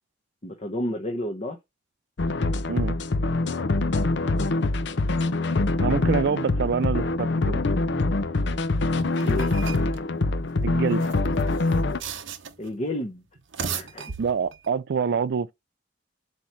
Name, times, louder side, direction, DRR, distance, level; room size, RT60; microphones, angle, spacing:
voice 1, 0.4-1.6 9.2-9.7 12.6-13.2 13.6-14.1, left 1 dB, 35° left, 1.0 m, -31 dB
sound 1, 2.2-12.0, left 2 dB, 65° left, 0.6 m, -24 dB
voice 2, 5.8-7.6 10.6-11.0 14.2-15.5, right 6 dB, 60° right, 0.4 m, -26 dB
sound 2, 9.0-10.0 10.9-12.7 13.4-14.7, right 6 dB, 85° right, 0.9 m, -36 dB
7.7 x 3.0 x 5.8 m
head